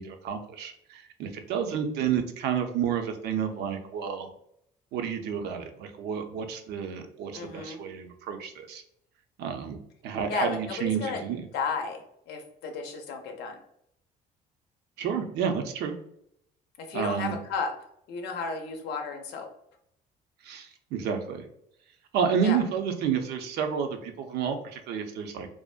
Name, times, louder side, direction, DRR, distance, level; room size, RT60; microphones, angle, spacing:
voice 1, 0.0-4.3 4.9-8.8 9.4-9.8 10.0-11.4 15.0-15.9 16.9-17.4 20.4-21.4 22.1-25.5, right 7 dB, 75° right, 6 dB, 0.4 m, -30 dB
voice 2, 7.3-7.8 10.3-11.2 11.5-13.6 16.8-17.7 18.1-19.5 22.4-22.6, left 4 dB, 80° left, 4 dB, 0.5 m, -33 dB
2.4 x 2.1 x 2.4 m, 0.73 s
cardioid pair, 110°, 17 cm